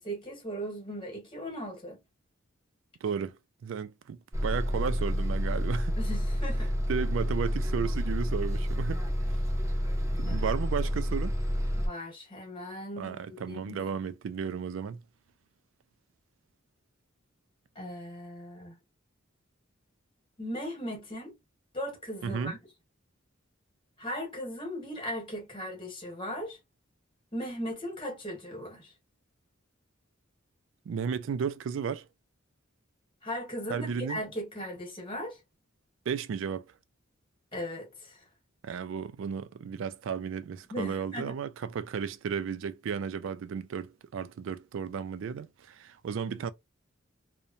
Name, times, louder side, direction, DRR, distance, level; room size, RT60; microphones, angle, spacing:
voice 1, 0.0-2.0 6.0-6.7 10.3-10.4 11.8-13.8 17.7-18.7 20.4-21.3 21.7-22.6 24.0-26.6 27.3-28.9 33.2-35.4 37.5-38.2 40.7-41.3, equal, 25° left, 1.2 m, -38 dB
voice 2, 3.0-3.4 3.6-6.0 6.9-9.0 10.2-11.4 13.0-15.0 22.2-22.5 30.9-32.0 33.7-34.2 36.1-36.7 38.6-46.5, right 6 dB, 70° right, 0.3 m, -34 dB
Bus, 4.3-11.9, equal, 15° right, 0.7 m, -29 dB
2.8 x 2.1 x 2.5 m
head